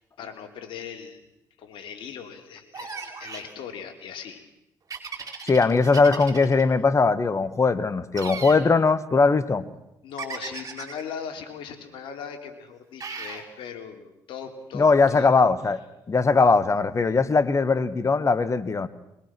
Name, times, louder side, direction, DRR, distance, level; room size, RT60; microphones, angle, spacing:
voice 1, 0.2-1.2 1.6-4.4 10.0-15.3, left 7 dB, 70° left, 5 dB, 3.6 m, -39 dB
sound 1, 2.7-3.5 4.9-6.6 8.1-8.6 10.2-11.0 13.0-13.4, right 5 dB, 40° right, 4.9 m, -37 dB
voice 2, 5.4-9.6 14.7-15.8 16.1-18.9, left 4 dB, 35° left, 14 dB, 1.7 m, -20 dB
22.5 x 22.5 x 6.2 m, 0.85 s
supercardioid pair, 65°, 9 cm